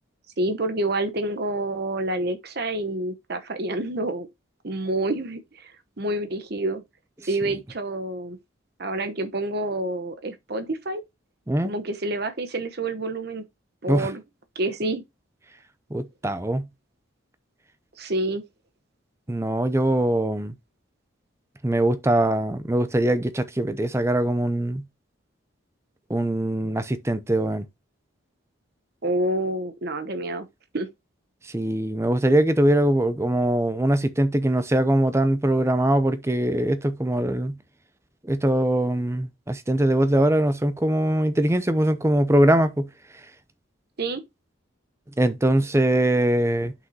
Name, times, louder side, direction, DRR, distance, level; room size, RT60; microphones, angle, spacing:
voice 1, 0.4-4.3 4.6-5.7 6.0-6.8 7.2-8.4 8.8-11.0 11.6-13.4 13.8-14.2 14.5-15.0 18.0-18.4 29.0-30.5 30.7-30.9 44.0-44.2, right 2 dB, 50° right, 0.9 m, -28 dB
voice 2, 15.9-16.7 19.3-20.5 21.6-24.8 26.1-27.7 31.4-37.6 38.2-42.9 45.2-46.7, right 1 dB, 15° right, 0.5 m, -22 dB
8.2 x 5.8 x 2.8 m
head